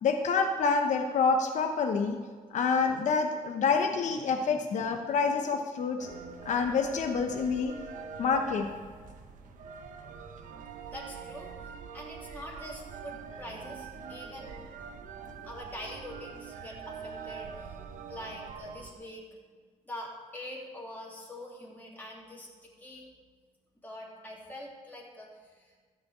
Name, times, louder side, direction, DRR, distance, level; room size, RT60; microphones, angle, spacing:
voice 1, 0.0-2.2 2.5-6.1 6.4-7.7 8.2-8.7, left 5 dB, 65° left, 5 dB, 1.0 m, -27 dB
sound 1, 6.0-18.9, right 6 dB, 80° right, 1.1 m, -44 dB
voice 2, 9.0-9.7 10.9-11.5 11.9-17.8 18.1-19.2 19.8-23.1 23.8-25.9, left 1 dB, 15° left, -4 dB, 3.0 m, -45 dB
14.0 x 6.2 x 8.4 m, 1.5 s
cardioid pair, 100°, 13 cm